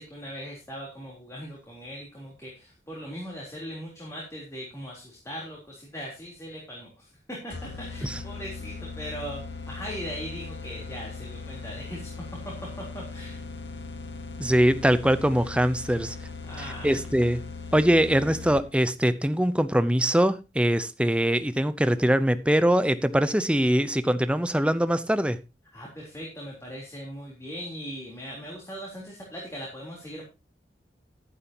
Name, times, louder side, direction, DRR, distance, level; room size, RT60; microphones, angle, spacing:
voice 1, 0.0-7.1 7.4-12.1 12.4-12.5 12.9-13.4 16.4-17.0 25.7-30.2, equal, 15° left, -3 dB, 3.6 m, -39 dB
sound 1, 7.5-18.9, left 4 dB, 85° left, 1.6 m, -39 dB
voice 2, 14.4-16.2 16.8-17.4 17.7-25.4, equal, 5° right, 12 dB, 0.7 m, -22 dB
12.5 x 11.0 x 2.9 m, 0.27 s
head